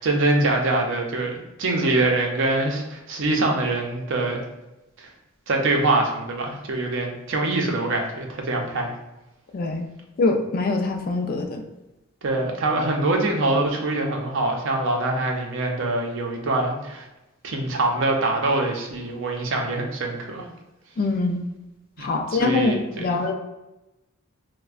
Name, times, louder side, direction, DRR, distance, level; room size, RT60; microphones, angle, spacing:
voice 1, 0.0-4.4 5.0-5.1 5.5-8.9 12.2-17.1 17.4-20.5 22.0-23.2, right 2 dB, 65° right, 2 dB, 0.5 m, -24 dB
voice 2, 9.5-9.9 10.2-11.6 21.0-21.4 22.0-23.3, left 3 dB, 45° left, 4 dB, 0.4 m, -23 dB
4.3 x 2.1 x 2.4 m, 0.97 s
head